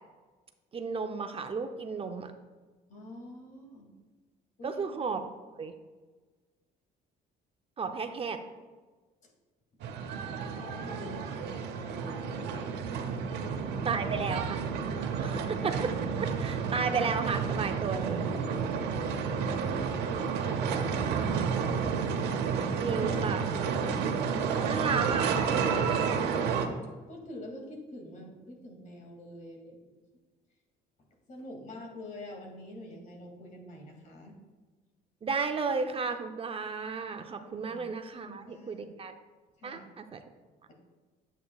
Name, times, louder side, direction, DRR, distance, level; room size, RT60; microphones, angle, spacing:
voice 1, 0.7-2.3 4.6-5.2 5.6-5.7 7.8-8.4 13.9-14.6 15.2-18.3 22.8-23.5 24.6-25.3 25.7-26.0 35.2-39.1 39.6-40.2, right 5 dB, 35° right, 6 dB, 0.6 m, -33 dB
voice 2, 2.9-3.9 4.6-5.0 10.4-12.8 13.3-14.1 15.4-15.6 19.6-21.8 24.5-24.8 26.4-26.7 27.1-29.8 31.3-34.4 37.6-37.8 38.2-38.9 39.6-39.9, left 1 dB, 50° left, 1 dB, 2.4 m, -46 dB
sound 1, 9.8-26.7, right 6 dB, 85° right, 0.9 m, -31 dB
10.5 x 8.1 x 2.3 m, 1.3 s
cardioid pair, 110°, 17 cm